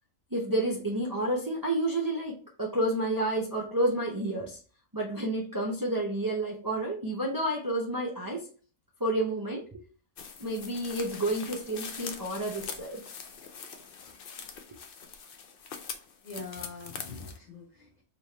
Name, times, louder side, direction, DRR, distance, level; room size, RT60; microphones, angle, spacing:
voice 1, 0.3-4.6 4.9-8.5 9.0-9.7 10.4-13.0, right 1 dB, 25° right, -3 dB, 0.5 m, -30 dB
sound 1, 10.2-17.4, left 6 dB, 60° left, 0.6 m, -43 dB
voice 2, 16.2-18.0, left 3 dB, 30° left, -3 dB, 1.3 m, -43 dB
3.5 x 2.9 x 4.4 m, 0.39 s
omnidirectional pair, 1.5 m